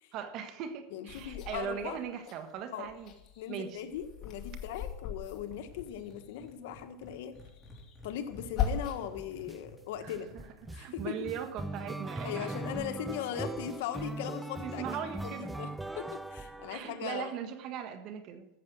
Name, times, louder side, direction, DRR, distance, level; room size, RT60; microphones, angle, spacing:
voice 1, 0.1-3.1 3.5-3.9 10.0-12.6 12.9-13.0 14.6-15.5 16.7-18.5, right 8 dB, 50° right, 8 dB, 1.6 m, -40 dB
voice 2, 0.9-2.0 2.7-2.9 3.4-7.3 8.0-10.3 10.7-11.3 12.2-15.0 15.2-15.7 16.0-17.3, left 9 dB, 75° left, 7 dB, 1.4 m, -39 dB
sound 1, 1.1-2.4 2.8-6.3 7.3-9.2 9.7-10.6, left 8 dB, 40° left, 2.4 m, -39 dB
sound 2, 5.5-11.9, left 2 dB, 10° left, 4.3 m, -54 dB
sound 3, 9.2-9.6 10.1-17.3, right 2 dB, 5° right, 0.6 m, -40 dB
14.0 x 7.6 x 6.4 m, 0.91 s
supercardioid pair, 135°, 0 cm